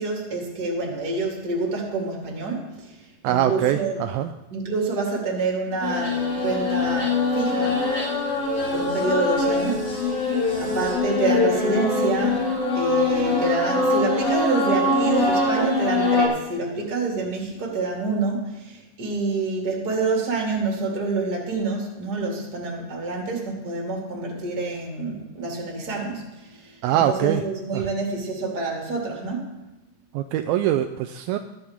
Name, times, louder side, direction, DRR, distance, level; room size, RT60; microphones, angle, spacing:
voice 1, 0.0-3.0 3.2-4.0 4.5-7.8 8.7-10.3 10.6-12.4 12.7-29.6, right 3 dB, 30° right, -1 dB, 2.5 m, -27 dB
voice 2, 3.2-4.3 26.8-27.4 27.7-27.9 30.1-31.4, right 11 dB, 80° right, 7 dB, 2.3 m, -23 dB
sound 1, 5.8-16.3, left 2 dB, 40° left, 3.2 m, -23 dB
21.0 x 7.6 x 3.6 m, 1.0 s
omnidirectional pair, 4.4 m